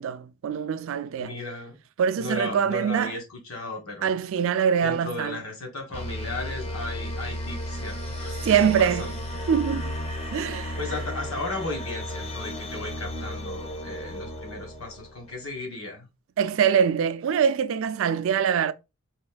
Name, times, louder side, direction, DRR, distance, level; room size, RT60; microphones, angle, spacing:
voice 1, 0.0-1.4 2.0-3.2 4.0-5.4 8.4-9.1 9.5-10.0 10.3-10.8 16.4-18.7, right 7 dB, 65° right, 0.3 m, -24 dB
voice 2, 1.2-1.8 2.2-4.1 4.8-9.2 10.8-16.1, left 2 dB, 80° left, 1.4 m, -35 dB
sound 1, 5.9-15.4, left 1 dB, 30° left, 0.6 m, -34 dB
4.1 x 3.5 x 2.2 m
head